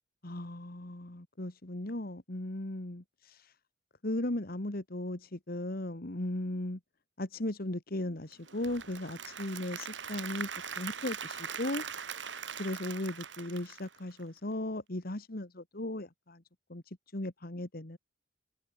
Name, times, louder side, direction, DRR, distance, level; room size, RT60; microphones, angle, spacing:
voice 1, 0.2-3.5 4.0-6.8 7.2-10.5 10.8-11.8 12.6-16.4 16.7-18.0, left 1 dB, 55° left, 2.1 m, -37 dB
Applause / Crowd, 8.3-14.4, right 7 dB, 85° right, 5.0 m, -41 dB
head